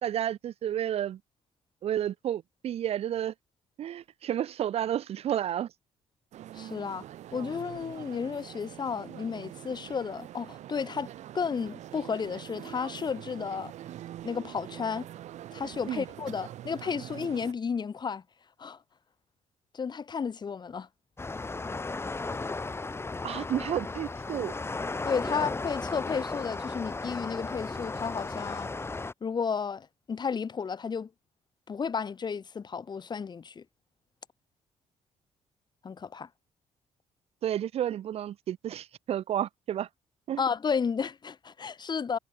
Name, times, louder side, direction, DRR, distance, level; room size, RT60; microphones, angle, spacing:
voice 1, 0.0-1.2 1.8-3.3 3.8-5.7 15.9-16.1 23.2-24.5 37.4-39.9 40.3-40.4, right 10 dB, 55° right, 0.4 m, -31 dB
sound 1, 6.3-17.5, right 12 dB, 75° right, 1.0 m, -44 dB
voice 2, 6.5-7.0 7.3-11.1 11.3-13.7 14.2-15.1 15.5-18.2 18.6-18.8 19.7-20.9 25.0-28.7 29.2-31.1 31.7-33.6 35.8-36.3 40.4-42.2, left 6 dB, 35° left, 0.9 m, -32 dB
sound 2, 21.2-29.1, left 3 dB, 20° left, 1.3 m, -35 dB
cardioid pair, 85°, 12 cm